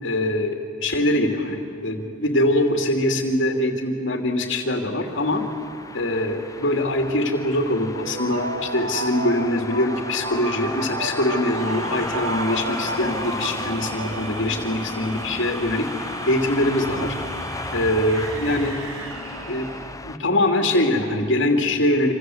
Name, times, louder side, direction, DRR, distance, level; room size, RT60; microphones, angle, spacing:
voice 1, 0.0-5.4 5.9-17.1 17.7-18.8 19.5-19.7 20.0-22.1, left 1 dB, 65° left, 3 dB, 2.8 m, -23 dB
sound 1, 5.1-20.2, left 3 dB, 15° left, 0.8 m, -34 dB
sound 2, 8.0-14.8, right 2 dB, 85° right, 2.5 m, -32 dB
sound 3, 11.5-20.0, right 3 dB, 70° right, 3.0 m, -38 dB
27.0 x 27.0 x 7.9 m, 2.7 s
head